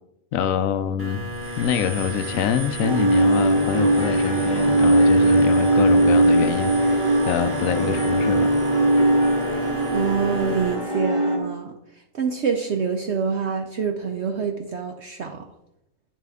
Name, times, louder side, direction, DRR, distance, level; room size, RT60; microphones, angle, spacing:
voice 1, 0.3-1.2 1.6-8.5, left 9 dB, 70° left, 12 dB, 1.0 m, -25 dB
sound 1, 1.0-10.8, equal, 10° right, 1.2 m, -33 dB
sound 2, 2.8-11.4, right 2 dB, 35° right, 1.6 m, -20 dB
sound 3, 3.5-11.5, left 5 dB, 50° left, 1.1 m, -33 dB
voice 2, 9.9-11.7 12.1-15.5, right 6 dB, 60° right, 4 dB, 0.9 m, -26 dB
9.1 x 7.5 x 3.6 m, 0.80 s
omnidirectional pair, 1.5 m